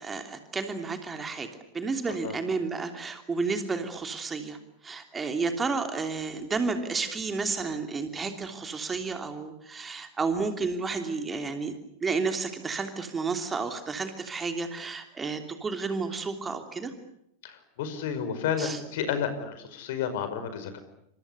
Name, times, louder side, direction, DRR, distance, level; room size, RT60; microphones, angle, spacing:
voice 1, 0.0-1.5 1.7-4.6 4.8-11.7 12.0-16.9 18.6-18.8, right 4 dB, 15° right, 6 dB, 3.0 m, -31 dB
voice 2, 17.4-20.8, left 7 dB, 55° left, 10 dB, 5.2 m, -31 dB
29.5 x 26.5 x 6.9 m, 0.79 s
figure-of-eight pair, 90°, 0 cm